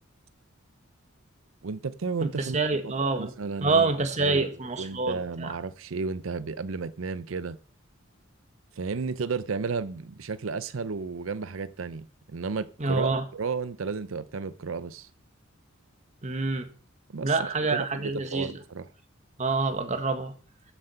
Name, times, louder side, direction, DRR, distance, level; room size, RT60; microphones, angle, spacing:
voice 1, 1.6-3.9 4.2-7.6 8.8-15.1 17.1-18.9, right 4 dB, 70° right, 0.6 m, -33 dB
voice 2, 2.4-3.3 3.6-5.5 12.8-13.2 16.2-16.7 17.2-18.5 19.4-20.3, right 3 dB, 35° right, 1.6 m, -26 dB
13.5 x 7.5 x 5.7 m
head